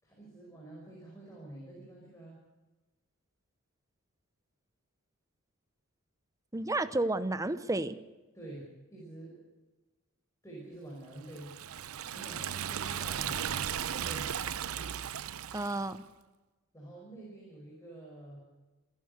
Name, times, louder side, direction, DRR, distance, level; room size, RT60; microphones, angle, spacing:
voice 1, 0.0-2.4 8.3-9.5 10.4-11.5 12.1-14.3 16.7-18.4, right 2 dB, 15° left, -3 dB, 5.9 m, -48 dB
voice 2, 6.5-8.0 15.5-16.0, right 2 dB, 15° right, 12 dB, 0.8 m, -31 dB
Liquid, 11.3-15.9, right 9 dB, 90° right, 0.7 m, -36 dB
28.5 x 11.5 x 8.3 m, 1.1 s
head